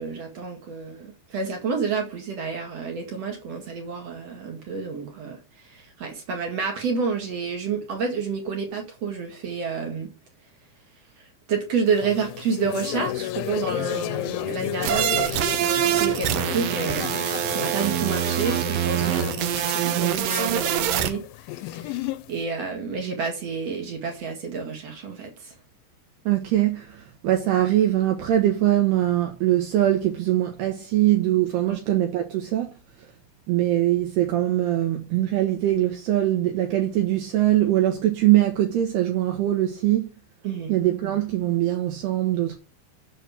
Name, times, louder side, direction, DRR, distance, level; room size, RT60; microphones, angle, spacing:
voice 1, 0.0-10.1 11.2-17.1 17.5-21.2 21.5-22.0 22.3-25.6 31.7-31.8 40.4-40.7, right 5 dB, 45° right, 2.3 m, -29 dB
sound 1, 11.9-22.4, left 16 dB, 85° left, 3.1 m, -33 dB
sound 2, 14.8-21.1, right 11 dB, 85° right, 2.0 m, -24 dB
voice 2, 26.3-32.8 33.5-40.1 40.7-42.6, right 13 dB, 70° right, 3.0 m, -22 dB
7.4 x 6.6 x 7.2 m
omnidirectional pair, 5.3 m